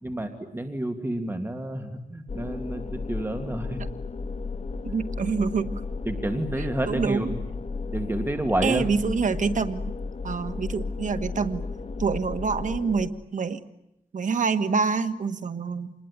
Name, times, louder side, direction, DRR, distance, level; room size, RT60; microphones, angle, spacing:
voice 1, 0.0-3.8 6.1-7.3 7.9-8.8, right 1 dB, 15° right, 6 dB, 2.4 m, -29 dB
sound 1, 2.3-13.1, left 4 dB, 50° left, 1.8 m, -34 dB
voice 2, 4.8-5.7 6.9-7.3 8.6-9.9 10.2-11.6 12.0-13.6 14.1-15.9, right 5 dB, 70° right, 10 dB, 1.6 m, -26 dB
28.0 x 21.0 x 9.8 m, 0.83 s
wide cardioid pair, 80°, 13 cm